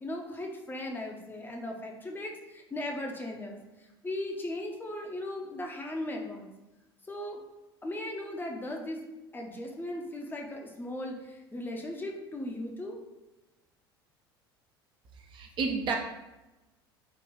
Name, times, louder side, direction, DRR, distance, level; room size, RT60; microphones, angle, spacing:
voice 1, 0.0-6.5 7.1-7.4 7.8-9.0 9.3-13.0, left 1 dB, 15° left, 1 dB, 0.6 m, -37 dB
voice 2, 15.2-16.0, right 5 dB, 40° right, 2 dB, 0.6 m, -31 dB
3.9 x 2.4 x 3.8 m, 1.0 s
figure-of-eight pair, 70°, 13 cm